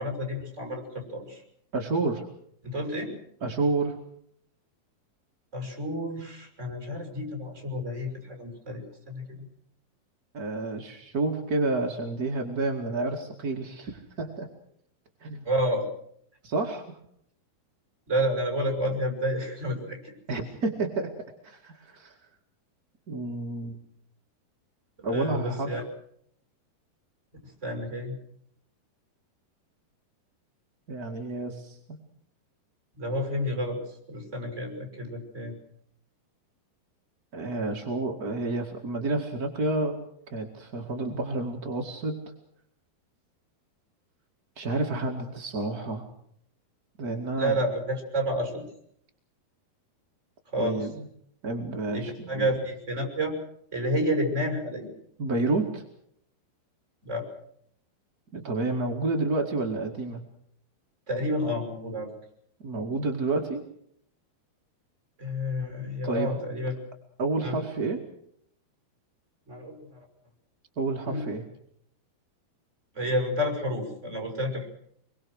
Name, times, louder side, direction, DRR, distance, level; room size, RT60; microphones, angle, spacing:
voice 1, 0.0-1.4 2.6-3.1 5.5-9.5 15.4-15.8 18.1-20.1 25.1-25.8 27.4-28.2 32.9-35.5 47.4-48.6 50.5-50.8 51.9-53.4 53.7-54.9 57.0-57.3 61.1-62.1 65.2-66.8 67.4-67.6 69.5-70.0 71.1-71.3 72.9-74.7, equal, 15° right, 3 dB, 6.5 m, -30 dB
voice 2, 1.7-2.3 3.4-4.0 10.3-14.5 15.2-15.5 16.4-17.0 20.3-21.1 21.4-22.2 23.1-23.8 25.0-25.7 30.9-32.0 37.3-40.0 40.3-42.2 44.5-46.1 47.0-47.6 50.6-51.1 51.4-52.5 55.2-55.8 58.3-60.2 62.6-63.6 66.0-66.4 67.2-68.0 70.8-71.4, right 2 dB, 35° right, 2 dB, 1.7 m, -30 dB
26.0 x 22.5 x 6.4 m, 0.69 s
omnidirectional pair, 4.6 m